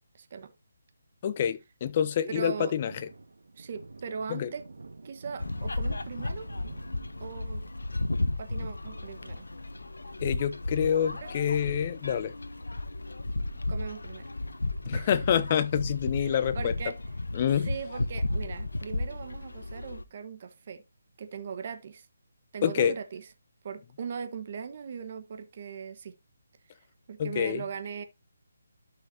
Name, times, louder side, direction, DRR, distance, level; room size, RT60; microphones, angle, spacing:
voice 1, 0.1-0.5 2.3-2.7 3.5-4.6 5.0-6.5 7.2-7.7 8.4-9.5 11.1-11.3 13.7-14.3 14.9-15.1 16.2-17.0 17.6-20.8 21.2-22.1 22.5-23.2 23.6-26.1 27.1-28.0, right 6 dB, 45° right, 1.3 m, -39 dB
voice 2, 1.2-2.9 4.3-4.5 10.2-12.3 14.9-16.7 17.3-17.7 22.6-22.9 27.2-27.6, left 9 dB, 35° left, 0.8 m, -27 dB
Thunder, 2.7-13.2 13.6-13.7 14.0-15.5 15.8-16.0 16.3-17.1 17.5-17.6 18.0-18.1 20.4-21.0, right 3 dB, 75° right, 1.6 m, -52 dB
sound 1, 5.4-20.0, left 2 dB, 90° left, 0.9 m, -34 dB
12.5 x 5.8 x 2.8 m
figure-of-eight pair, 155°, 0 cm